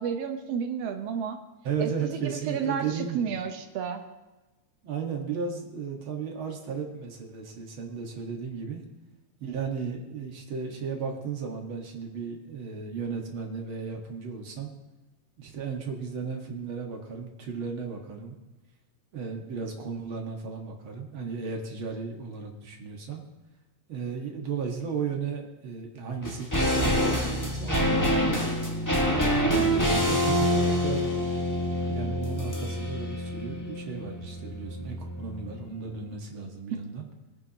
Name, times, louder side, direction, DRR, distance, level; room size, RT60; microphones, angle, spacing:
voice 1, 0.0-1.4 1.8-4.0 36.7-36.8, right 7 dB, 65° right, 6 dB, 1.9 m, -31 dB
voice 2, 1.6-3.3 4.8-8.8 9.4-14.7 15.4-18.4 19.1-23.2 23.9-28.4 28.9-31.0 31.9-37.1, right 5 dB, 50° right, 1 dB, 2.1 m, -35 dB
sound 1, 26.2-35.6 35.9-36.0, equal, 10° left, 0.9 m, -26 dB
21.0 x 9.8 x 2.9 m, 1.1 s
omnidirectional pair, 3.4 m